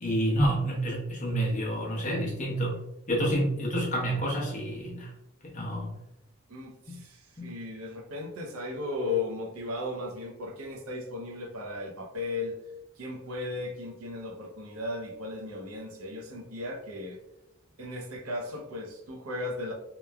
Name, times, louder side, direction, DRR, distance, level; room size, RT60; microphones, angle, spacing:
voice 1, 0.0-5.1 5.4-5.9 6.9-7.0 7.4-7.5, right 1 dB, 35° left, -3 dB, 0.7 m, -29 dB
voice 2, 6.5-12.6 13.0-17.2 17.8-19.7, left 2 dB, 75° right, 0 dB, 0.5 m, -36 dB
3.0 x 2.1 x 2.2 m, 0.85 s
head